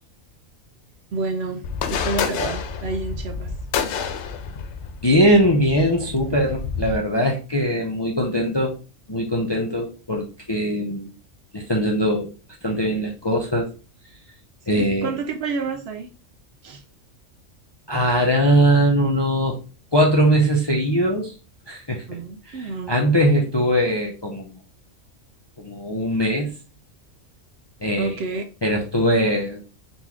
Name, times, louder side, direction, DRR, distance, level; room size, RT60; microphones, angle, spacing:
voice 1, 1.1-1.6 1.9-3.5 14.7-16.1 16.6-16.8 22.1-22.9 28.0-28.4, right 4 dB, 60° right, 0.8 m, -29 dB
sound 1, 1.6-7.0, left 6 dB, 70° left, 0.8 m, -29 dB
voice 2, 5.0-8.7 9.1-11.1 11.5-12.3 12.6-13.7 14.7-15.1 17.9-19.6 19.9-21.3 21.7-22.0 22.5-24.5 25.6-26.5 27.8-28.2 28.6-29.8, equal, 30° left, 0.5 m, -21 dB
4.0 x 3.0 x 3.5 m
omnidirectional pair, 1.3 m